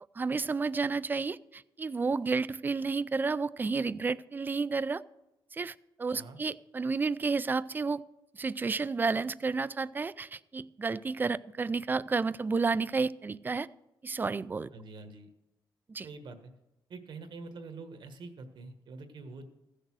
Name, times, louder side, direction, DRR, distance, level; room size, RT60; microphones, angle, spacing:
voice 1, 0.2-5.0 5.5-8.0 8.3-13.7 14.0-14.7 15.9-16.1, right 4 dB, 20° right, 17 dB, 0.3 m, -31 dB
voice 2, 14.7-15.3 16.0-16.5 16.9-19.4, right 3 dB, 65° right, 7 dB, 1.4 m, -45 dB
15.0 x 6.6 x 6.2 m, 0.92 s
cardioid pair, 125°, 9 cm